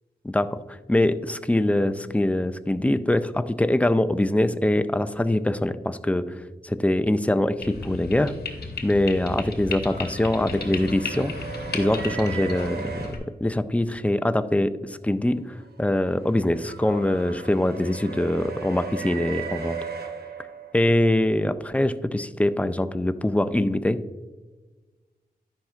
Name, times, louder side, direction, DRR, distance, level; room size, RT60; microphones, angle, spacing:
voice 1, 0.2-6.4 6.6-8.3 8.8-11.3 11.7-13.1 13.4-19.8 20.7-24.0, left 1 dB, 10° left, 12 dB, 0.3 m, -23 dB
sound 1, 7.6-13.2, left 3 dB, 85° left, 1.0 m, -34 dB
sound 2, 9.8-13.1 15.5-21.0, right 5 dB, 80° right, 0.9 m, -37 dB
10.5 x 5.7 x 2.4 m, 1.3 s
wide cardioid pair, 80°, 16 cm